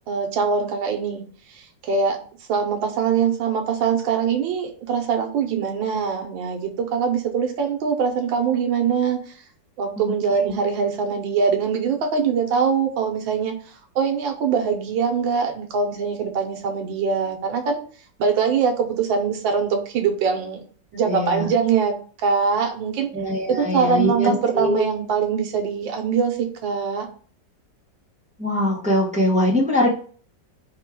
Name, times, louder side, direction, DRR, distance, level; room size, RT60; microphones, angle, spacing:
voice 1, 0.1-1.2 1.5-2.2 2.5-9.3 9.8-13.5 13.9-17.8 18.2-20.6 20.9-21.9 22.2-23.1 23.5-27.1, right 6 dB, 85° right, 4 dB, 1.6 m, -23 dB
voice 2, 21.0-21.5 23.1-24.9 28.4-30.0, left 1 dB, 10° right, -4 dB, 0.4 m, -22 dB
4.3 x 2.2 x 4.7 m, 0.43 s
omnidirectional pair, 2.0 m